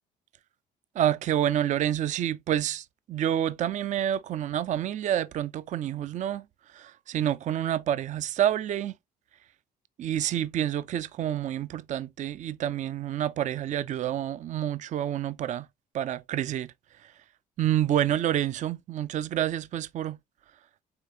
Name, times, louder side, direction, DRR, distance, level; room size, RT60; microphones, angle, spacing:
voice 1, 1.0-6.4 6.7-8.9 10.0-15.7 15.9-16.7 17.0-17.1 17.6-20.2, right 11 dB, 45° right, 0.4 m, -28 dB
5.0 x 3.7 x 2.6 m
cardioid pair, 110°, 17 cm